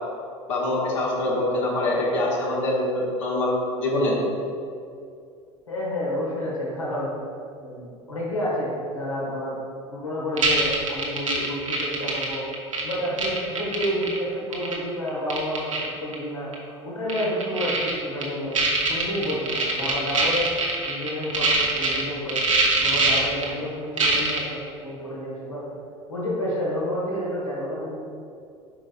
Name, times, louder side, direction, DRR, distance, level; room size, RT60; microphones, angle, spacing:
voice 1, 0.5-4.2, left 1 dB, 70° left, -4 dB, 1.3 m, -24 dB
voice 2, 5.7-7.1 7.6-9.6 9.9-12.4 12.8-18.6 18.9-20.5 20.8-22.4 22.8-25.7 26.1-28.0, equal, 85° left, -5 dB, 1.4 m, -29 dB
sound 1, 10.4-14.2 14.5-14.7 15.1-15.9 16.1-16.2 16.5-16.6 17.1-17.9 18.2-18.3 18.5-22.0 22.3-23.4 24.0-24.4, right 3 dB, 85° right, 0.9 m, -23 dB
8.5 x 5.1 x 2.4 m, 2.4 s
figure-of-eight pair, 70°, 16 cm